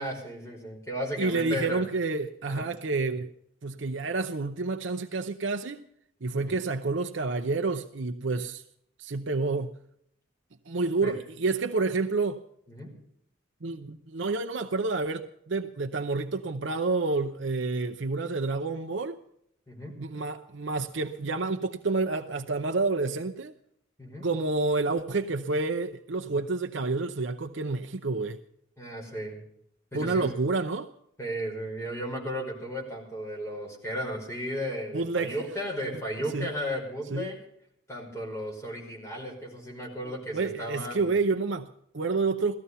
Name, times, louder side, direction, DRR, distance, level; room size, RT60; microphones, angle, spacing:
voice 1, 0.0-1.8 2.5-2.7 6.3-6.5 11.0-11.1 12.7-12.9 19.7-20.0 24.0-24.3 28.8-29.4 29.9-30.3 31.2-37.4 37.9-41.1, equal, 15° left, 5.2 m, -35 dB
voice 2, 1.2-3.3 3.6-5.8 6.2-8.6 9.0-9.7 10.7-12.4 13.6-19.2 20.0-23.5 24.2-28.4 29.9-30.9 34.9-35.3 36.3-36.5 37.1-37.3 40.1-42.5, right 3 dB, 70° right, 0.7 m, -29 dB
17.0 x 14.0 x 5.6 m
head